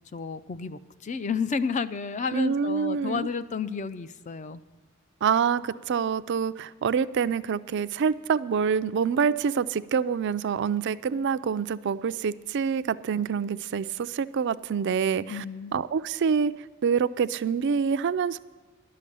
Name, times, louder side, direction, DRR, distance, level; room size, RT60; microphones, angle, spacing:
voice 1, 0.1-4.6 15.3-15.8, left 5 dB, 30° left, 14 dB, 0.4 m, -31 dB
voice 2, 2.3-3.3 5.2-15.4 15.7-16.5 16.8-18.4, right 6 dB, 50° right, 14 dB, 0.3 m, -26 dB
11.5 x 6.7 x 8.5 m, 1.4 s
head